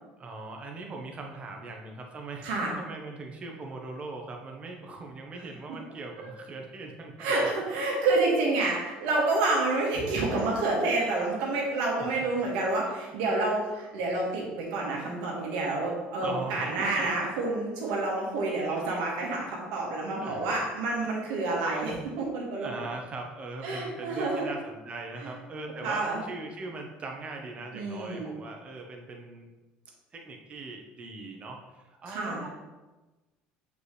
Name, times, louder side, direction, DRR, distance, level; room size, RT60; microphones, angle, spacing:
voice 1, 0.2-7.4 12.4-12.5 13.0-13.2 16.2-17.3 20.2-20.6 21.0-21.1 22.5-29.5 30.1-32.5, right 3 dB, 35° right, 2 dB, 1.2 m, -40 dB
voice 2, 7.2-22.7 23.6-24.5 25.2-25.3 25.8-26.3 27.7-28.3 32.1-32.4, right 2 dB, 85° right, -2 dB, 2.1 m, -28 dB
6.6 x 5.2 x 3.3 m, 1.1 s
supercardioid pair, 105°, 4 cm